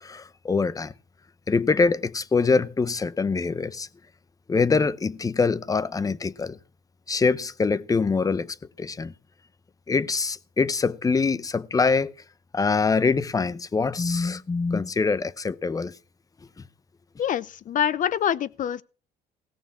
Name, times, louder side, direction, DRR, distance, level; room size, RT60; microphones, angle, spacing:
voice 1, 0.0-0.9 1.5-3.9 4.5-6.6 7.1-9.1 9.9-12.1 12.5-16.0, left 4 dB, 20° left, 0.7 m, -24 dB
voice 2, 17.2-18.8, left 9 dB, 50° left, 0.8 m, -25 dB
16.5 x 7.0 x 7.1 m
cardioid pair, 110°, 17 cm